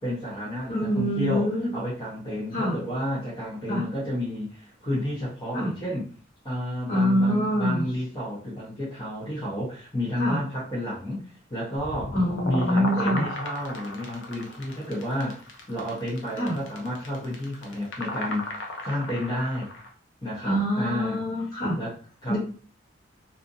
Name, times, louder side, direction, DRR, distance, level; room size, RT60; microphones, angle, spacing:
voice 1, 0.0-1.5 1.7-6.1 6.4-12.1 12.4-18.5 18.8-19.7 20.2-21.2 21.8-21.9 22.2-22.4, left 1 dB, 25° left, -9 dB, 0.8 m, -31 dB
voice 2, 0.7-1.7 2.5-2.8 3.7-3.8 5.5-5.7 6.9-7.9 10.2-10.4 12.1-13.3 16.4-16.5 20.4-21.8 22.3-22.4, equal, 45° left, -6 dB, 1.4 m, -25 dB
sound 1, 11.8-19.9, left 1 dB, 70° left, 0.6 m, -36 dB
2.6 x 2.5 x 2.6 m, 0.41 s
head